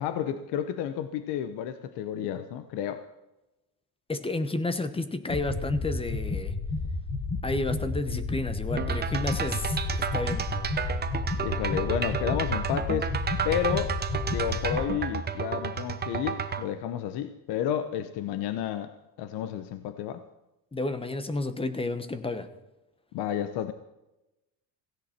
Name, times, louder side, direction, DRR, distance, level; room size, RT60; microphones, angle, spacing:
voice 1, 0.0-3.0 11.4-13.1 13.4-14.0 14.3-18.9 19.2-20.2 23.1-23.7, left 10 dB, 75° left, 10 dB, 1.0 m, -31 dB
voice 2, 4.1-6.5 7.4-10.5 20.7-22.5, left 2 dB, 15° left, 11 dB, 1.0 m, -31 dB
sound 1, 5.3-14.8, left 3 dB, 30° left, 1.9 m, -32 dB
sound 2, 8.8-16.6, right 7 dB, 25° right, 0.9 m, -31 dB
17.0 x 16.0 x 4.4 m, 0.97 s
cardioid pair, 140°, 40 cm